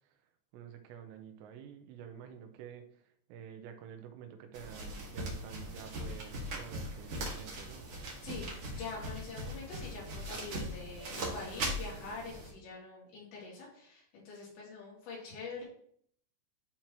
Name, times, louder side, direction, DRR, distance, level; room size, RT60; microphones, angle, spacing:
voice 1, 0.5-3.0 3.3-7.9, right 8 dB, 80° right, 6 dB, 2.8 m, -49 dB
sound 1, 4.5-12.5, right 1 dB, 50° right, 1.7 m, -40 dB
voice 2, 8.2-15.6, left 4 dB, 75° left, -5 dB, 5.0 m, -45 dB
12.0 x 4.5 x 2.9 m, 0.62 s
omnidirectional pair, 5.2 m